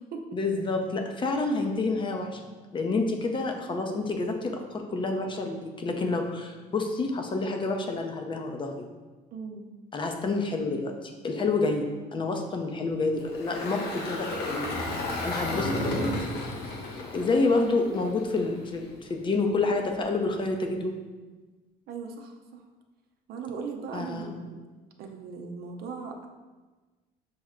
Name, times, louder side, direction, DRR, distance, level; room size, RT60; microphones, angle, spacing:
voice 1, 0.3-2.4 2.7-8.9 9.9-14.7 15.2-16.1 17.1-20.9 23.9-24.4, left 3 dB, 30° left, 3 dB, 0.6 m, -28 dB
voice 2, 9.3-9.7 17.2-17.4 21.9-22.3 23.3-24.6 25.0-26.3, right 5 dB, 70° right, 3 dB, 0.6 m, -38 dB
Engine, 13.2-18.5, left 1 dB, 80° left, 0.8 m, -32 dB
6.1 x 2.1 x 3.6 m, 1.3 s
cardioid pair, 110°, 17 cm